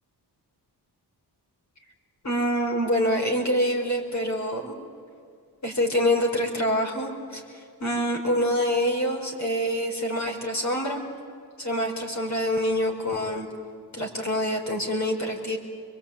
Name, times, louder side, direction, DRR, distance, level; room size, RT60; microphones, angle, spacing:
voice 1, 2.2-4.7 5.6-11.0 11.6-13.5 13.9-15.6, equal, 45° left, 1 dB, 5.2 m, -26 dB
25.0 x 23.0 x 8.9 m, 2.3 s
cardioid pair, 95°, 40 cm